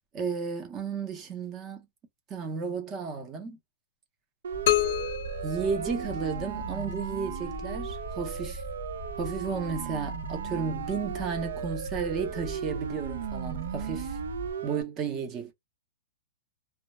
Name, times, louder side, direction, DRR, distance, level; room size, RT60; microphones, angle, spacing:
voice 1, 0.1-1.9 2.3-3.6 5.4-8.6 9.2-14.2 14.6-15.5, right 5 dB, 15° right, 0.6 m, -33 dB
Siren, 4.4-14.8, right 7 dB, 75° right, 0.4 m, -36 dB
sound 1, 4.5-14.5, equal, 10° left, 0.8 m, -41 dB
sound 2, 4.7-6.6, left 13 dB, 45° left, 0.4 m, -29 dB
2.2 x 2.0 x 2.9 m
hypercardioid pair, 180°, 0 cm